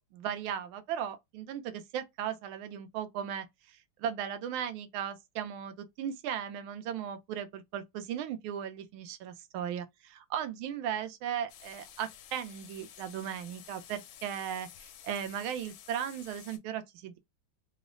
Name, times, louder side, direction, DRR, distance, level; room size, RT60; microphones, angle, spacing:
voice 1, 0.0-17.2, right 9 dB, 85° right, 1.4 m, -37 dB
sound 1, 11.5-16.6, left 10 dB, 75° left, 1.0 m, -52 dB
3.6 x 2.1 x 2.4 m
omnidirectional pair, 2.3 m